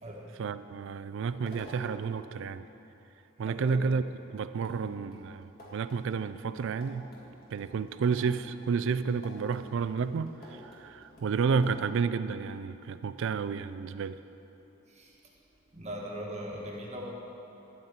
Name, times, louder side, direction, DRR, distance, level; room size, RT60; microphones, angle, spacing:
voice 1, 0.4-2.7 3.4-7.1 7.5-14.2, right 5 dB, 60° right, 13 dB, 0.3 m, -31 dB
sound 1, 1.3-2.2 4.1-4.2 4.6-11.9, equal, 45° left, 2.1 m, -51 dB
voice 2, 3.4-3.8 14.9-15.1 15.7-17.2, equal, 30° right, -2 dB, 1.2 m, -39 dB
12.5 x 4.4 x 8.0 m, 2.9 s
head